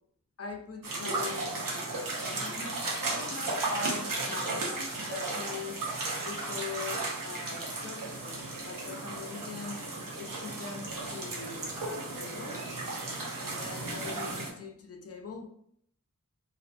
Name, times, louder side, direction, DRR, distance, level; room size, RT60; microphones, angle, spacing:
voice 1, 0.4-5.8 6.2-9.8 10.2-12.6 13.4-15.5, left 4 dB, 50° left, 4 dB, 0.4 m, -42 dB
sound 1, 0.8-14.5, right 2 dB, 85° right, 0.7 m, -35 dB
2.5 x 2.2 x 2.4 m, 0.68 s
wide cardioid pair, 65°, 33 cm